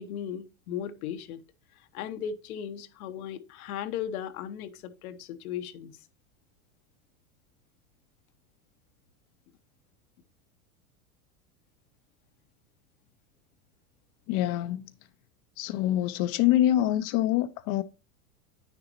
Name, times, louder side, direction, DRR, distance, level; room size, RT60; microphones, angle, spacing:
voice 1, 0.0-1.4 1.9-5.9, left 9 dB, 75° left, 1.0 m, -36 dB
voice 2, 14.3-14.9 15.6-17.8, left 13 dB, 45° left, 0.6 m, -25 dB
9.3 x 6.7 x 2.9 m
supercardioid pair, 120°, 43 cm